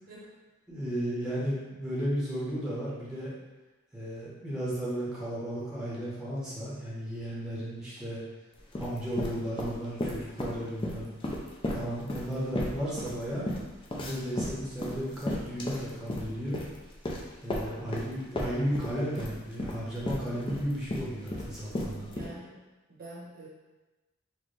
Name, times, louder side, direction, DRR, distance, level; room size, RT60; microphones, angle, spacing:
voice 1, 0.7-3.3 3.9-8.2 8.8-11.1 11.7-13.5 14.0-16.6 17.4-22.1, equal, 5° right, -8 dB, 0.8 m, -34 dB
sound 1, 8.6-10.5 10.8-18.1 18.4-22.3, left 1 dB, 25° left, 0.4 m, -34 dB
voice 2, 22.1-22.6 22.9-23.5, right 2 dB, 50° right, -6 dB, 0.9 m, -46 dB
4.1 x 2.1 x 3.2 m, 1.1 s
head